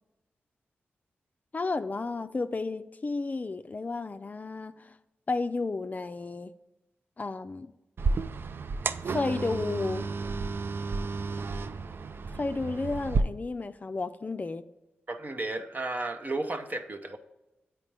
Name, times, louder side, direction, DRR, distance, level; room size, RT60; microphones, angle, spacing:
voice 1, 1.5-4.9 5.3-6.5 7.2-7.7 9.1-10.1 12.4-14.7, left 3 dB, 40° left, 10 dB, 0.4 m, -32 dB
sound 1, 8.0-13.2, right 4 dB, 55° right, 0.4 m, -32 dB
voice 2, 15.1-17.2, right 2 dB, 40° right, 7 dB, 0.8 m, -33 dB
8.3 x 4.4 x 3.4 m, 0.99 s
cardioid pair, 50°, 4 cm